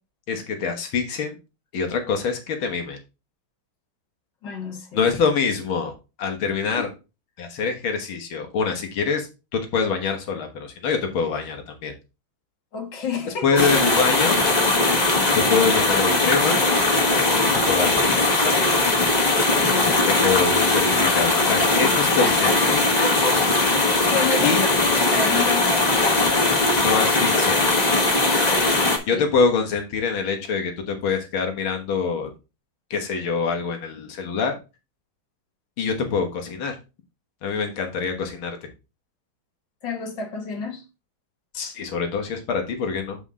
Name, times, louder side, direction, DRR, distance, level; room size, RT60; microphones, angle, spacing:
voice 1, 0.3-1.4 1.7-3.0 4.9-5.9 6.2-6.9 7.4-11.9 13.4-14.5 15.3-16.7 17.7-18.6 20.1-22.8 24.4-24.7 26.8-27.7 29.1-32.3 32.9-34.6 35.8-36.8 37.4-38.7 41.5-43.2, left 5 dB, 90° left, 2.2 m, -25 dB
voice 2, 4.4-5.0 6.7-6.9 12.7-13.5 19.6-20.4 22.2-23.8 24.1-26.6 29.1-29.2 39.8-40.8, left 5 dB, 65° left, 2.1 m, -31 dB
sound 1, 13.6-29.0, left 2 dB, 25° left, 1.3 m, -20 dB
7.5 x 5.5 x 3.7 m
omnidirectional pair, 2.2 m